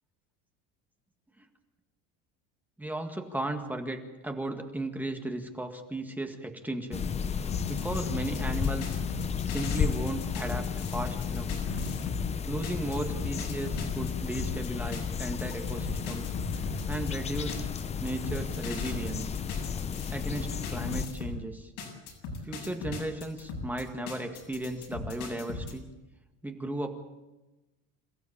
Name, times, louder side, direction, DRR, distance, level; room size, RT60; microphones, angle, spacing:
voice 1, 2.8-7.1 7.7-9.0 9.5-11.5 12.5-16.3 16.9-17.7 18.0-19.4 20.1-21.7 22.4-25.9 26.4-26.9, right 1 dB, 5° right, 4 dB, 1.9 m, -35 dB
sound 1, 6.9-21.1, left 7 dB, 20° left, 0.8 m, -33 dB
sound 2, 7.5-12.3 12.6-21.4 21.8-25.7, left 4 dB, 75° left, 7.8 m, -39 dB
28.0 x 16.0 x 8.5 m, 1.1 s
cardioid pair, 155°, 32 cm